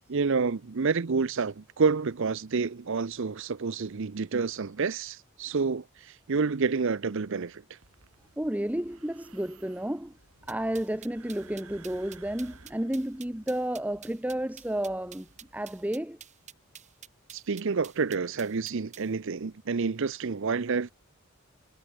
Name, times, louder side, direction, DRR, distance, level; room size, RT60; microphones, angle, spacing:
voice 1, 0.1-5.8 6.3-7.6 17.3-20.9, right 4 dB, 60° right, 0.6 m, -28 dB
sound 1, 7.8-15.9, right 3 dB, 80° right, 3.4 m, -56 dB
voice 2, 8.4-10.1 10.5-16.2, right 1 dB, 5° right, 0.8 m, -32 dB
sound 2, 10.5-19.1, right 9 dB, 35° right, 6.4 m, -49 dB
head